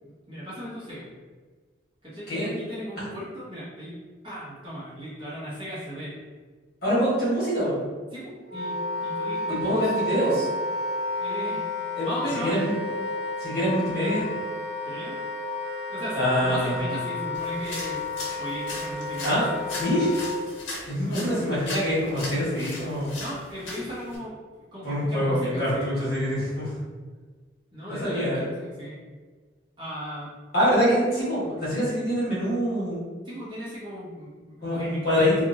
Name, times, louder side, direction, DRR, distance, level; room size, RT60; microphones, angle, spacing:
voice 1, 0.0-1.1 2.0-4.0 4.2-6.1 8.1-10.0 11.1-12.7 14.8-15.2 15.9-18.0 18.4-19.4 23.2-25.9 27.7-29.0 29.8-30.3 33.2-35.0, equal, 25° right, -10 dB, 1.0 m, -36 dB
voice 2, 2.3-2.6 3.0-3.1 6.8-7.9 9.5-10.5 11.9-12.1 12.4-12.7 13.4-14.3 16.1-16.8 19.2-20.2 20.9-23.1 24.8-26.7 27.9-28.4 30.5-33.0 34.6-35.4, equal, 55° left, -9 dB, 1.4 m, -25 dB
Wind instrument woodwind instrument, 8.5-20.4, left 2 dB, 60° right, 0.9 m, -32 dB
sound 1, 17.3-24.2, left 2 dB, 75° left, 0.8 m, -39 dB
2.9 x 2.5 x 2.6 m, 1.4 s
head